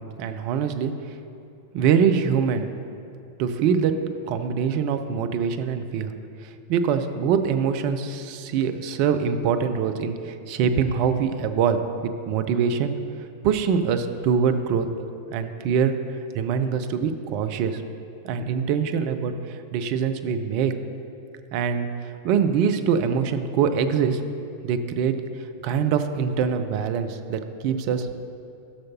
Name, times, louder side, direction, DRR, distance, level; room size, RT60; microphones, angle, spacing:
voice 1, 0.2-0.9 1.7-2.7 3.4-6.1 6.4-12.9 13.4-14.9 15.3-15.9 16.3-17.8 18.2-20.7 21.5-24.2 24.6-25.1 25.6-28.1, right 7 dB, 45° right, 8 dB, 0.6 m, -24 dB
14.5 x 6.4 x 2.9 m, 2.6 s
figure-of-eight pair, 90°, 0 cm